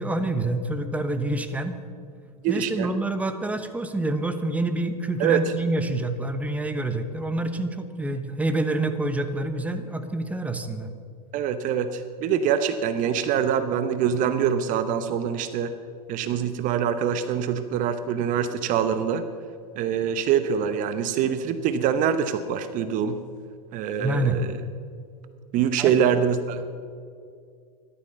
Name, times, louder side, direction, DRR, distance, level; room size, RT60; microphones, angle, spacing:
voice 1, 0.0-1.8 2.5-10.9 24.0-24.4 25.8-26.0, right 2 dB, 5° right, 9 dB, 1.1 m, -27 dB
voice 2, 2.4-2.9 5.2-5.4 11.3-15.7 16.1-19.3 19.8-23.2 23.7-24.6 25.5-26.8, right 8 dB, 40° right, 11 dB, 0.9 m, -24 dB
14.0 x 12.0 x 6.7 m, 2.3 s
figure-of-eight pair, 90°, 21 cm